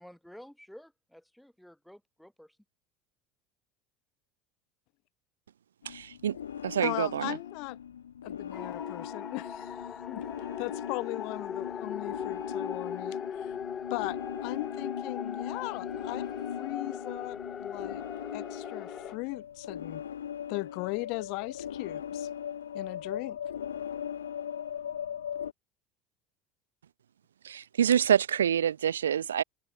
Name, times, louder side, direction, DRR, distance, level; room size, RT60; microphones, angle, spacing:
voice 1, 0.0-2.6, equal, ahead, 3.3 m, -52 dB
sound 1, 5.8-25.5, left 9 dB, 85° left, 0.5 m, -40 dB
voice 2, 5.9-6.4 6.6-7.4 27.4-29.4, right 9 dB, 85° right, 0.4 m, -26 dB
voice 3, 6.8-7.8 8.2-9.8 10.1-10.2 10.6-13.6 13.9-16.3 16.6-18.0 18.3-20.0 20.5-22.3 22.7-23.4, left 29 dB, 60° left, 0.9 m, -38 dB
sound 2, 8.5-19.1, left 7 dB, 35° left, 0.7 m, -39 dB
hypercardioid pair, 80°, 0 cm